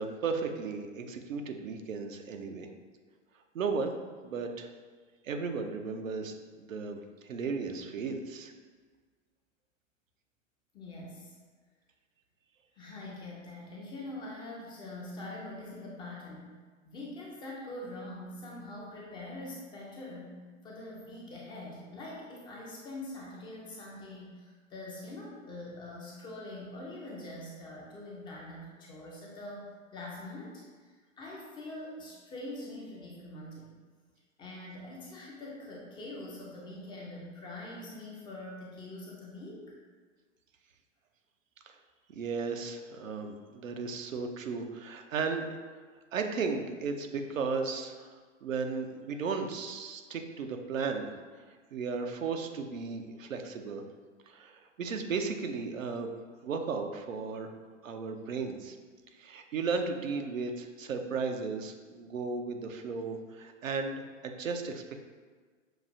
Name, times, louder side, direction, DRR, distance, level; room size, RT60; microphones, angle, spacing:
voice 1, 0.0-2.7 3.5-3.9 4.2-4.7 5.2-8.5 41.7-41.8 42.1-45.5 46.1-51.1 51.7-53.8 54.3-56.1 56.4-57.5 57.8-58.8 59.2-65.0, right 4 dB, 85° right, 5 dB, 0.6 m, -35 dB
voice 2, 10.7-11.4 12.8-16.5 16.8-30.9 31.2-33.7 34.4-39.8, left 1 dB, 15° left, -3 dB, 0.4 m, -44 dB
5.9 x 2.4 x 2.6 m, 1.5 s
hypercardioid pair, 110°, 38 cm